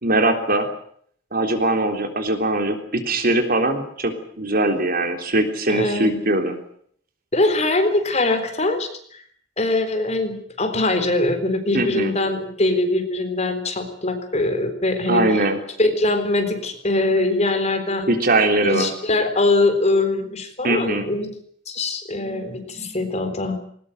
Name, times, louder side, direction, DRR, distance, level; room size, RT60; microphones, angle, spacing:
voice 1, 0.0-0.7 1.3-6.6 11.7-12.1 15.1-15.6 18.1-18.9 20.6-21.1, right 2 dB, 50° right, 6 dB, 3.6 m, -21 dB
voice 2, 5.7-6.2 7.3-9.2 9.6-15.4 15.8-18.1 18.6-21.3 21.7-23.6, left 2 dB, 35° left, 7 dB, 4.0 m, -22 dB
20.5 x 19.5 x 9.2 m, 0.62 s
head